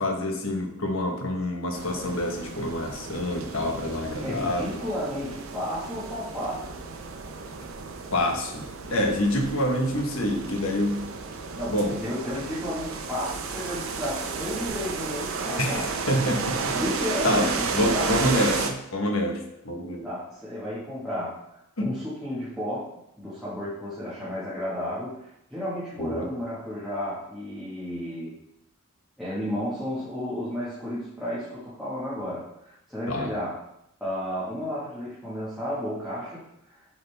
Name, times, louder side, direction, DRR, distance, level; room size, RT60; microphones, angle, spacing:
voice 1, 0.0-4.7 8.1-11.0 11.7-11.9 15.6-16.7 17.2-19.4 19.6-20.0 21.8-21.9 26.0-26.3 33.1-33.3, left 1 dB, 80° left, 2 dB, 1.1 m, -27 dB
sound 1, 1.7-18.7, right 4 dB, 85° right, 0.7 m, -33 dB
voice 2, 4.2-6.6 11.5-15.9 16.7-18.2 20.0-22.9 23.2-28.3 29.2-33.5 34.0-36.8, equal, ahead, -12 dB, 1.6 m, -33 dB
7.9 x 3.8 x 3.4 m, 0.80 s
head